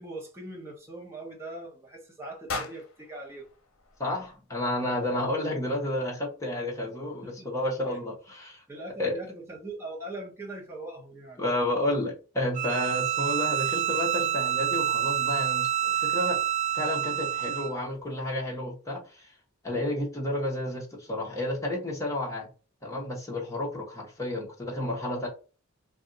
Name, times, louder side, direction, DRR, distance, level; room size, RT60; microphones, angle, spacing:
voice 1, 0.0-3.5 5.0-5.2 5.8-5.9 7.2-7.5 7.9-8.0 8.7-11.4, right 2 dB, 10° right, 0.8 m, -41 dB
sound 1, 2.5-4.6, left 3 dB, 70° left, 0.7 m, -39 dB
voice 2, 4.0-8.6 9.0-9.2 11.4-16.4 16.7-19.3 19.6-22.5 22.8-25.3, left 1 dB, 15° left, 1.1 m, -31 dB
Bowed string instrument, 12.5-17.8, right 11 dB, 35° right, 0.3 m, -27 dB
2.6 x 2.3 x 3.9 m
head